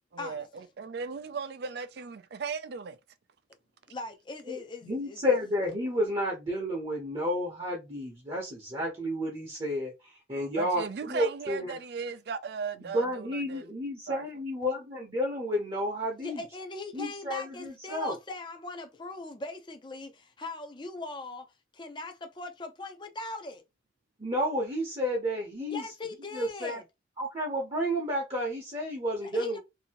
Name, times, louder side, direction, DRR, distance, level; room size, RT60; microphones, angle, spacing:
voice 1, 0.1-3.0 10.6-13.7 14.1-14.3, right 5 dB, 55° right, 0.4 m, -37 dB
voice 2, 3.9-5.4 16.2-23.6 25.6-26.8 29.2-29.6, left 3 dB, 25° left, 0.5 m, -40 dB
voice 3, 4.5-11.8 12.7-16.4 16.9-18.1 24.2-25.8 26.3-26.8 27.2-29.6, equal, 30° right, 0.8 m, -31 dB
2.7 x 2.6 x 2.8 m
head